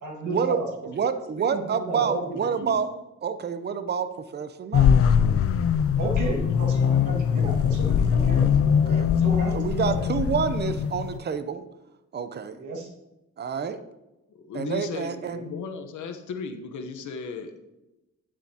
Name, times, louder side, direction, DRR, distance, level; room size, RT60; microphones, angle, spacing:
voice 1, 0.0-0.7 1.5-2.7 6.0-8.4 9.2-10.0 12.6-12.9 15.2-15.4, right 2 dB, 85° right, 0 dB, 1.8 m, -33 dB
voice 2, 0.9-2.9 3.2-4.9 8.7-9.1 9.5-11.6 12.1-12.6 13.4-13.8 14.5-15.4, right 6 dB, 35° right, 11 dB, 0.6 m, -28 dB
sound 1, 4.7-11.2, left 7 dB, 50° left, 0.5 m, -22 dB
voice 3, 14.3-17.6, left 5 dB, 80° left, 6 dB, 1.0 m, -36 dB
9.4 x 7.3 x 2.8 m, 0.97 s
cardioid pair, 100°, 29 cm